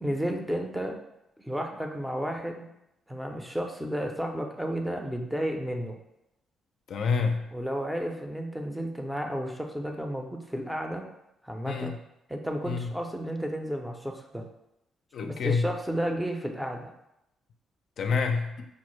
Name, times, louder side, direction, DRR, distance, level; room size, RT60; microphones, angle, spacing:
voice 1, 0.0-0.9 1.4-2.7 3.1-6.0 7.5-11.0 11.4-11.9 12.3-14.4 15.2-16.9, equal, 5° right, 3 dB, 0.5 m, -32 dB
voice 2, 6.9-7.5 11.7-11.9 12.6-12.9 15.1-15.7 18.0-18.7, left 5 dB, 65° left, 5 dB, 0.4 m, -27 dB
5.1 x 2.0 x 3.1 m, 0.85 s
cardioid pair, 90°, 0 cm